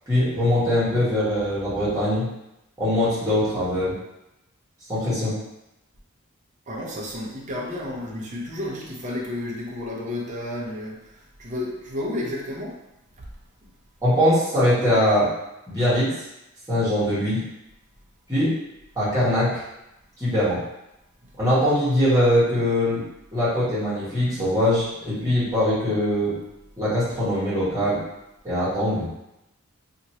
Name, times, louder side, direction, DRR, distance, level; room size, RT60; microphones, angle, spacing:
voice 1, 0.1-2.3 2.8-4.0 4.9-5.4 14.0-15.3 15.7-16.2 16.7-17.5 18.3-18.6 18.9-19.6 20.2-20.6 21.4-23.0 23.3-26.4 26.8-28.0 28.4-29.1, left 1 dB, 15° right, -10 dB, 1.2 m, -22 dB
voice 2, 6.7-12.8, left 1 dB, 35° right, -3 dB, 0.6 m, -32 dB
2.9 x 2.5 x 2.8 m, 0.89 s
head